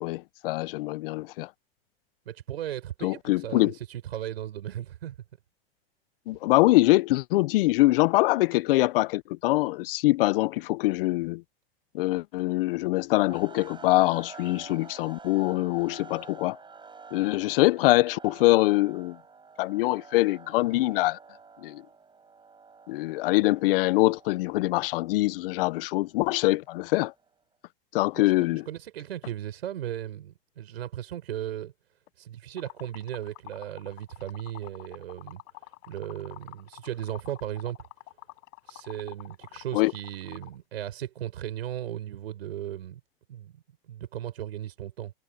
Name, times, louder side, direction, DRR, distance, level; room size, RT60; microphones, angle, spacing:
voice 1, 0.0-1.5 3.0-3.7 6.3-11.4 11.9-16.6 17.1-19.2 19.6-21.2 21.6-21.8 22.9-27.1 27.9-28.7 39.7-39.9, left 20 dB, 65° left, 0.8 m, -24 dB
voice 2, 2.3-5.1 28.1-28.3 28.7-31.7 32.2-35.4 35.9-37.8 38.7-43.0 43.3-43.6 43.9-45.1, right 11 dB, 85° right, 5.9 m, -36 dB
sound 1, 13.3-27.4, right 5 dB, 15° right, 7.6 m, -50 dB
Liquid, 32.6-40.6, left 25 dB, 50° left, 6.3 m, -47 dB
hypercardioid pair, 120°, 30 cm